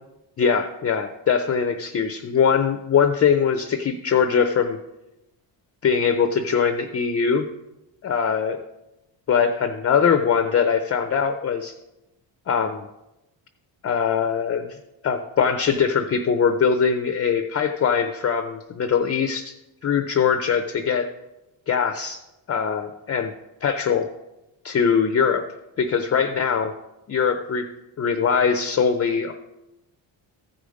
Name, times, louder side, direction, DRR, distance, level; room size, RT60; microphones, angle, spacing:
voice 1, 0.4-4.8 5.8-7.5 8.0-8.6 9.3-11.7 12.5-12.8 13.8-14.7 15.0-19.5 19.8-21.1 21.7-22.2 22.5-23.3 23.6-24.1 24.6-25.4 25.8-26.7 27.1-27.7 28.0-29.3, left 6 dB, 35° left, 7 dB, 0.5 m, -21 dB
14.5 x 5.0 x 5.1 m, 0.95 s
cardioid pair, 130°, 44 cm